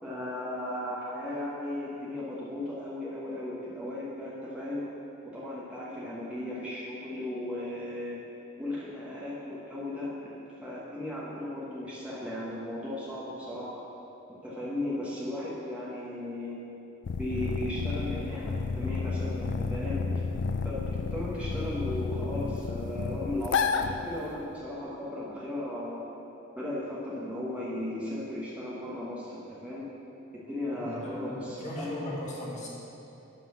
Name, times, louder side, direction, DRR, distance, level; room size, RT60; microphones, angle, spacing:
voice 1, 0.0-4.9 5.2-8.2 8.6-13.9 14.3-16.6 17.2-20.0 20.6-26.0 26.5-29.9 30.3-31.9, left 1 dB, 5° right, -8 dB, 1.2 m, -36 dB
sound 1, 17.0-24.5, left 4 dB, 60° left, 0.4 m, -31 dB
voice 2, 30.7-32.7, left 1 dB, 35° left, -5 dB, 1.8 m, -38 dB
11.0 x 4.0 x 6.3 m, 3.0 s
head